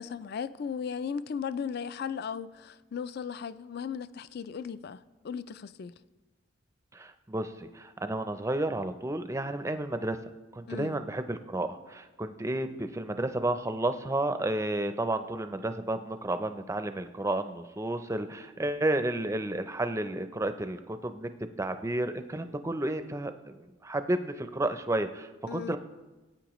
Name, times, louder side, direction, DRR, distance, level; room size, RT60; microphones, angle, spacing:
voice 1, 0.0-6.0 10.7-11.0 25.5-25.8, left 6 dB, 50° left, 0.3 m, -36 dB
voice 2, 6.9-10.2 10.5-21.3 21.6-25.8, right 1 dB, 15° right, 0.4 m, -31 dB
18.0 x 9.0 x 3.0 m
head